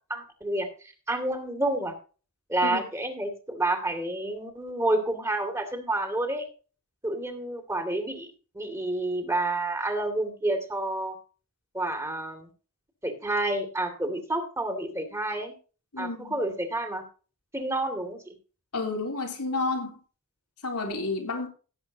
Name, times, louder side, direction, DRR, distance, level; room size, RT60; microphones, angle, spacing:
voice 1, 0.1-1.9 2.5-6.5 7.0-11.2 11.7-12.5 13.0-15.6 16.0-17.0 17.5-18.3, right 2 dB, 10° right, 5 dB, 2.4 m, -29 dB
voice 2, 15.9-16.4 18.7-20.0 20.6-21.5, left 3 dB, 90° left, 3 dB, 3.4 m, -30 dB
17.0 x 8.3 x 2.9 m, 0.36 s
head